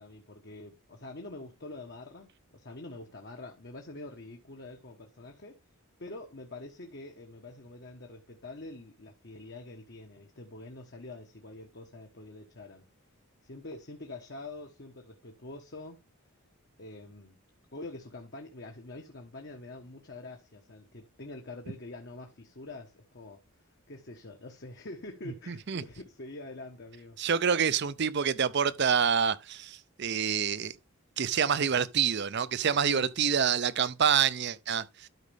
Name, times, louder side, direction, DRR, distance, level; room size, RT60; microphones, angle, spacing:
voice 1, 0.0-5.6 6.0-12.8 13.4-16.0 16.8-17.4 17.7-27.2 32.9-33.1, left 2 dB, 50° left, 1.2 m, -45 dB
voice 2, 25.5-25.8 27.2-30.7 31.2-35.1, right 7 dB, 50° right, 0.6 m, -27 dB
12.5 x 5.1 x 3.4 m
head